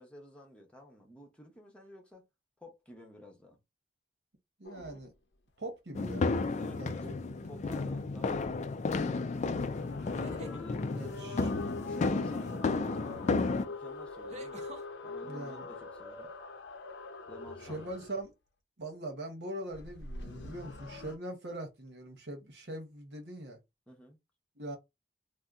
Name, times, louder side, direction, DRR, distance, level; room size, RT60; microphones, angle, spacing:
voice 1, 0.0-2.3 2.6-3.6 6.5-7.1 7.5-8.9 10.4-11.4 11.9-13.2 13.7-14.7 15.0-16.3 17.3-17.8 23.9-24.2, left 1 dB, 5° left, 0.9 m, -52 dB
sound 1, 4.6-5.0 6.1-8.6 9.3-18.3 19.7-21.2, left 3 dB, 80° left, 0.6 m, -45 dB
voice 2, 4.6-5.1 5.6-6.4 6.8-7.1 10.9-11.5 15.2-15.7 17.6-18.3 18.8-23.6 24.6-24.8, right 1 dB, 70° right, 1.1 m, -42 dB
sound 2, 5.9-13.6, left 3 dB, 40° left, 0.3 m, -32 dB
sound 3, 7.4-7.9 10.0-10.6 12.9-13.0 14.3-14.9, equal, 40° right, 0.6 m, -47 dB
2.7 x 2.2 x 3.5 m
head